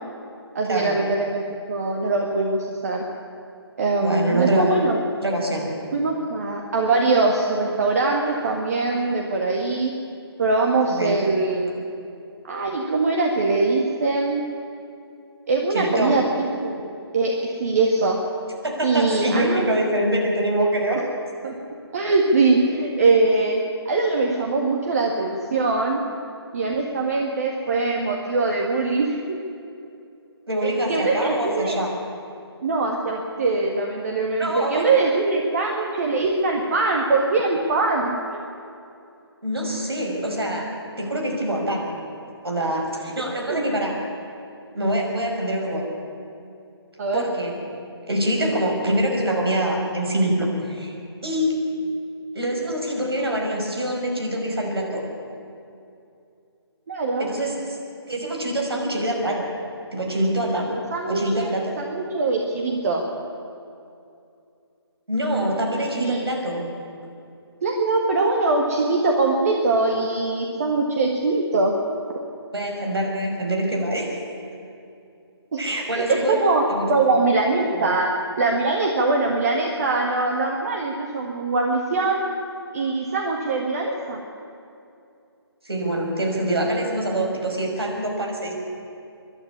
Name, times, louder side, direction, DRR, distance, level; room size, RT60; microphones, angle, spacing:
voice 1, 0.5-3.0 3.8-5.0 5.9-9.9 10.4-11.8 12.4-14.4 15.5-16.9 17.1-18.2 18.8-19.7 21.4-21.5 21.9-26.0 26.5-29.4 30.6-31.8 32.6-38.1 43.3-43.9 47.0-47.3 56.9-57.3 60.5-61.5 61.8-63.0 66.0-66.3 67.6-71.7 75.5-75.6 75.9-76.6 76.9-78.1 78.4-82.2 82.7-84.2, right 3 dB, 35° right, 0 dB, 1.8 m, -22 dB
voice 2, 4.0-4.7 5.2-5.7 11.0-11.1 15.7-16.1 18.6-21.0 30.5-31.9 34.4-34.8 39.4-40.7 41.0-42.0 42.4-43.9 44.7-45.9 47.1-47.6 48.1-50.9 51.2-51.6 52.3-55.0 57.2-57.8 58.1-59.5 59.9-60.7 61.1-61.8 65.1-66.7 72.5-74.2 75.6-76.4 76.7-76.9 77.7-77.9 85.6-88.5, right 1 dB, 65° right, 0 dB, 5.7 m, -25 dB
24.0 x 11.5 x 9.7 m, 2.6 s
figure-of-eight pair, 145°, 14 cm